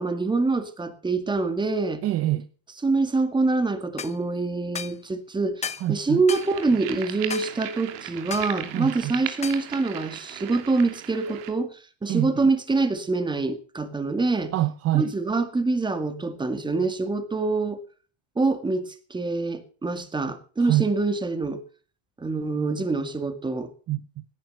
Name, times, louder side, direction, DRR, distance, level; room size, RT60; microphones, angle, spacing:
voice 1, 0.0-2.0 2.8-14.5 14.9-17.8 18.4-21.6 22.2-23.7, right 3 dB, 10° right, 2.0 m, -25 dB
voice 2, 2.0-2.5 5.8-6.2 8.7-9.1 12.1-12.5 14.5-15.1 20.6-20.9 23.9-24.2, right 15 dB, 35° right, 0.7 m, -25 dB
sound 1, 4.0-4.2 4.7-5.0 5.6-5.9 6.3-6.5 7.3-7.5 8.3-8.5 9.4-9.6, left 6 dB, 15° left, 0.8 m, -33 dB
sound 2, 6.3-11.5, right 11 dB, 80° right, 2.9 m, -37 dB
17.5 x 10.5 x 5.5 m
cardioid pair, 150°, 40 cm